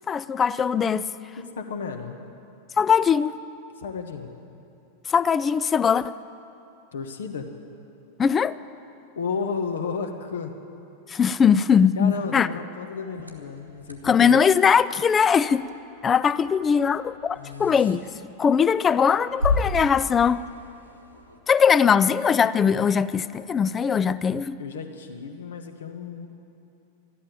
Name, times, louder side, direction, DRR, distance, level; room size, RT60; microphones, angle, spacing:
voice 1, 0.1-1.1 2.8-3.3 5.1-6.1 8.2-8.6 11.1-12.5 14.0-15.7 16.0-18.0 18.4-20.4 21.5-24.6, left 7 dB, 20° left, 17 dB, 0.4 m, -20 dB
voice 2, 1.4-2.2 3.8-4.3 6.9-7.5 9.2-10.5 12.0-14.4 17.4-17.8 24.6-26.3, left 5 dB, 65° left, 6 dB, 1.2 m, -33 dB
sound 1, 13.1-21.4, left 2 dB, 90° right, 1.4 m, -34 dB
13.0 x 11.5 x 9.1 m, 2.7 s
figure-of-eight pair, 90°, 0 cm